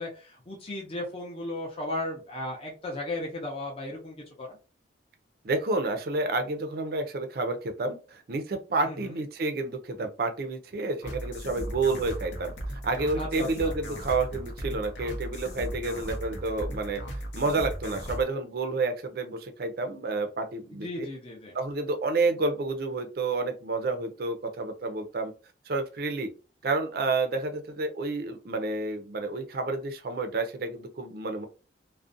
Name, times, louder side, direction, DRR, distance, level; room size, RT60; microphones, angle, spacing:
voice 1, 0.0-4.6 8.8-9.1 13.2-13.7 20.7-21.6, left 1 dB, 30° left, -1 dB, 0.5 m, -35 dB
voice 2, 5.4-17.0 17.3-21.1 21.5-25.3 25.7-26.3 26.6-31.5, right 3 dB, 55° right, 7 dB, 0.4 m, -30 dB
sound 1, 11.0-18.2, equal, 85° left, 0.7 m, -37 dB
2.4 x 2.1 x 2.5 m, 0.34 s
head